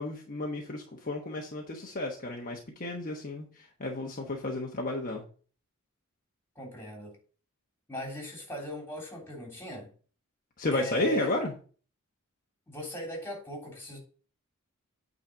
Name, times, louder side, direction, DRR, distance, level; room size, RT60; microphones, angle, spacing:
voice 1, 0.0-5.2 10.6-11.5, left 2 dB, 40° left, 1.1 m, -32 dB
voice 2, 6.6-7.2 7.9-9.9 10.7-11.3 12.7-14.0, right 1 dB, 10° left, 3.4 m, -38 dB
8.9 x 4.1 x 5.1 m
head